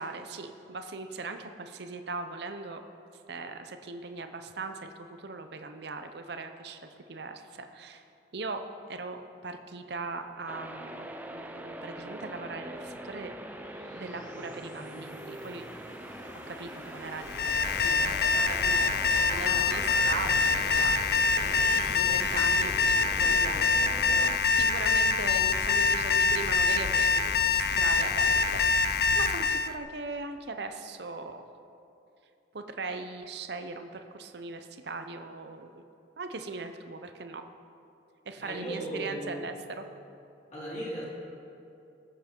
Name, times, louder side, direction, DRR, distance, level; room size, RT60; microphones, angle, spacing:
voice 1, 0.0-2.8 3.3-8.0 8.3-13.3 13.9-15.7 16.5-17.3 17.8-28.6 28.9-31.4 32.5-35.8 36.2-37.4 38.3-39.9, right 3 dB, 60° right, 7 dB, 0.7 m, -39 dB
sound 1, 10.5-24.4, right 1 dB, 10° right, 0.5 m, -43 dB
sound 2, 11.6-27.3, left 4 dB, 80° left, 1.2 m, -49 dB
Alarm, 17.2-29.7, left 4 dB, 55° left, 0.4 m, -25 dB
voice 2, 38.4-39.5 40.5-41.1, equal, 35° left, -8 dB, 3.5 m, -36 dB
19.5 x 8.1 x 4.5 m, 2.7 s
head